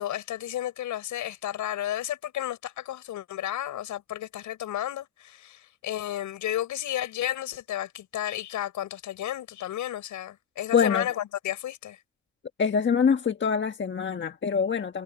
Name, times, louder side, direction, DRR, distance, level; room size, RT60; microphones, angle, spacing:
voice 1, 0.0-12.0, left 12 dB, 80° left, 7.4 m, -32 dB
voice 2, 10.7-11.1 12.6-15.0, left 6 dB, 40° left, 1.5 m, -24 dB
cardioid pair, 90°, 30 cm